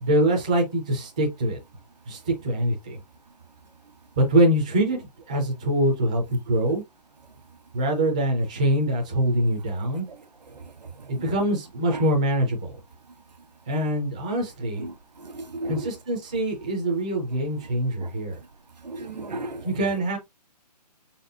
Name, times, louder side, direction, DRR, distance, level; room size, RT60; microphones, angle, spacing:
voice 1, 0.0-1.6 2.1-3.0 4.2-6.8 7.7-10.1 11.1-12.8 13.7-14.8 15.7-18.4 19.6-20.2, right 1 dB, 10° right, 0.3 m, -24 dB
voice 2, 14.8-15.9 18.0-18.1 18.8-19.7, right 2 dB, 80° right, 1.2 m, -34 dB
4.9 x 4.1 x 2.6 m
hypercardioid pair, 160°, 21 cm